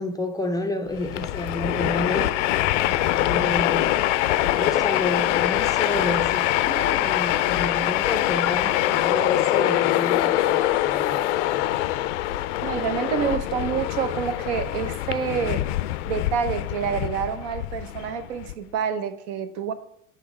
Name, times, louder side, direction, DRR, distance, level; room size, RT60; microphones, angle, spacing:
voice 1, 0.0-2.3 2.8-4.0 4.4-12.1, left 2 dB, 10° left, 0.4 m, -31 dB
Train, 0.9-18.5, left 14 dB, 65° left, 0.5 m, -24 dB
voice 2, 12.6-15.7 16.1-19.7, right 7 dB, 60° right, 0.7 m, -27 dB
7.7 x 3.3 x 4.8 m
hypercardioid pair, 80°, 39 cm